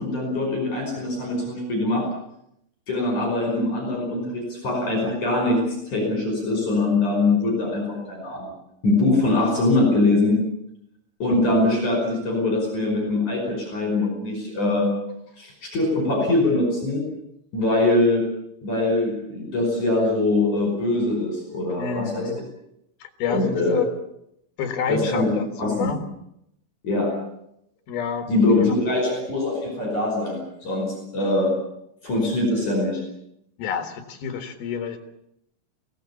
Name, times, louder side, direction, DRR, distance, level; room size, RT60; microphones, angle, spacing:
voice 1, 0.0-2.1 2.9-5.6 5.9-8.5 8.8-10.4 11.2-14.9 15.4-17.0 17.5-18.2 18.6-22.4 23.3-23.9 24.9-26.0 26.8-27.1 28.3-31.5 32.0-33.0, left 2 dB, 40° left, 1 dB, 6.4 m, -23 dB
voice 2, 21.8-22.4 23.0-23.9 24.6-26.0 27.9-28.3 33.6-35.0, left 7 dB, 60° left, 7 dB, 3.0 m, -28 dB
23.5 x 17.5 x 8.5 m, 0.78 s
omnidirectional pair, 5.8 m